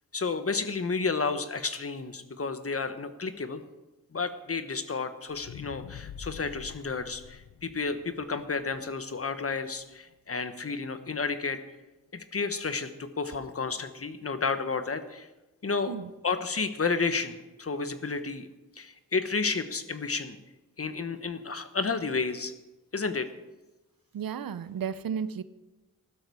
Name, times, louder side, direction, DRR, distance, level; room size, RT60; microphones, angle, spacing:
voice 1, 0.1-3.6 4.1-11.6 12.1-15.3 15.6-16.0 16.2-18.5 18.8-20.4 20.8-22.5 22.9-23.3, left 4 dB, 40° left, 10 dB, 1.2 m, -31 dB
sound 1, 5.3-9.6 10.1-10.2, left 8 dB, 85° left, 0.7 m, -46 dB
voice 2, 24.1-25.4, right 7 dB, 85° right, 14 dB, 0.7 m, -33 dB
15.0 x 12.5 x 4.9 m, 1.1 s
cardioid pair, 65°, 34 cm